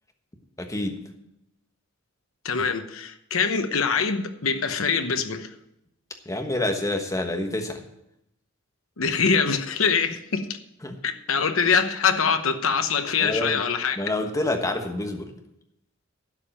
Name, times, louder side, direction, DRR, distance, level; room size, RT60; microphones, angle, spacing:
voice 1, 0.6-1.0 6.2-7.8 10.8-11.0 13.2-13.6 14.0-15.3, left 1 dB, 15° left, 1.2 m, -27 dB
voice 2, 2.4-5.5 9.0-10.5 11.0-14.0, left 5 dB, 85° left, 1.0 m, -24 dB
11.5 x 5.4 x 8.8 m
head